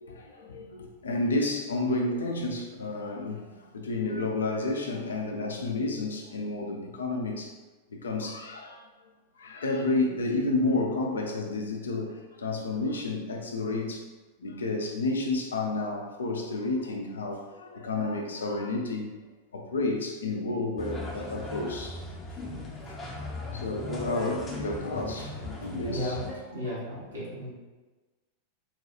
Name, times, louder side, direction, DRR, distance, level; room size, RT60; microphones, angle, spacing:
voice 1, 0.0-7.5 7.9-8.9 9.4-14.1 14.4-19.1 19.5-22.0 22.9-23.0 23.5-26.2, left 2 dB, 70° left, 2 dB, 0.5 m, -31 dB
sound 1, 20.8-26.4, left 2 dB, 15° left, 0.7 m, -38 dB
voice 2, 25.6-26.2 26.5-27.5, equal, 70° right, -7 dB, 1.3 m, -35 dB
3.8 x 2.3 x 2.9 m, 1.2 s
figure-of-eight pair, 90°, 0 cm